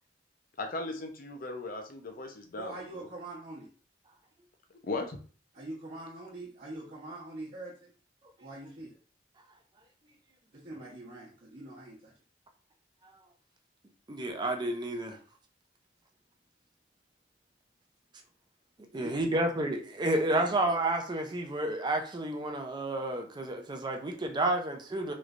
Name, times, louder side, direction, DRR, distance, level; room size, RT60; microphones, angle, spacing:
voice 1, 0.6-3.1 4.8-5.2, left 2 dB, 50° left, 5 dB, 0.6 m, -37 dB
voice 2, 2.6-3.7 5.5-7.9 8.4-8.9 10.5-12.1 18.9-19.5 20.3-20.6, right 2 dB, 45° right, -8 dB, 0.9 m, -44 dB
voice 3, 14.1-15.2 18.9-25.1, right 1 dB, 25° right, 4 dB, 0.5 m, -30 dB
3.1 x 3.1 x 2.5 m, 0.40 s
head